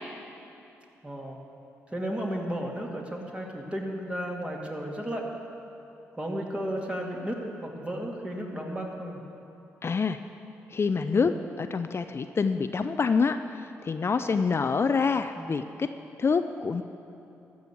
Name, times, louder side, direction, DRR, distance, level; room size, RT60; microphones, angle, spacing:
voice 1, 1.0-1.4 1.9-5.2 6.1-9.2 11.1-11.3 15.4-15.5, equal, 15° right, -1 dB, 2.5 m, -34 dB
voice 2, 9.8-10.2 10.7-11.3 11.6-15.9 16.2-16.8, left 5 dB, 40° left, 9 dB, 0.5 m, -26 dB
13.0 x 6.3 x 8.4 m, 2.9 s
hypercardioid pair, 45°, 6 cm